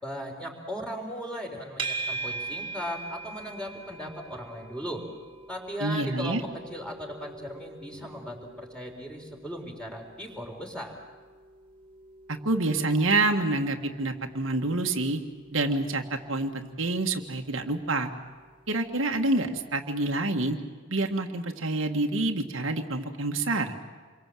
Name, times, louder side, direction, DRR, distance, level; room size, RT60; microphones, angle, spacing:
voice 1, 0.0-5.0 5.5-6.4 6.7-11.0, equal, 5° left, 1 dB, 3.9 m, -37 dB
sound 1, 1.8-19.0, right 3 dB, 25° right, 2.4 m, -43 dB
voice 2, 5.8-6.4 12.4-15.2 15.5-18.1 18.7-20.6 20.9-23.7, right 2 dB, 75° right, 3 dB, 1.6 m, -27 dB
28.0 x 23.5 x 7.6 m, 1.5 s
head